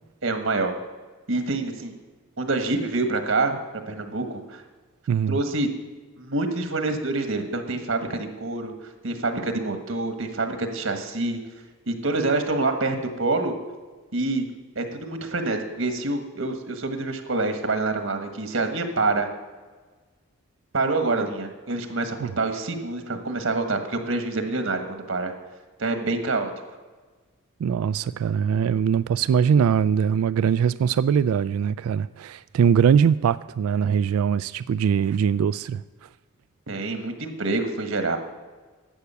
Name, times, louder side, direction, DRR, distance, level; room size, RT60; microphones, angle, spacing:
voice 1, 0.2-0.8 1.3-1.9 2.4-3.6 3.9-4.6 5.3-5.7 6.2-8.7 9.0-11.4 11.9-13.5 14.1-14.4 14.7-19.3 20.7-25.3 25.8-26.5 36.7-38.2, right 3 dB, 70° right, 1.4 m, -26 dB
voice 2, 5.1-5.4 22.2-22.3 27.6-35.8, right 7 dB, 90° right, 0.3 m, -22 dB
11.5 x 8.2 x 6.9 m
head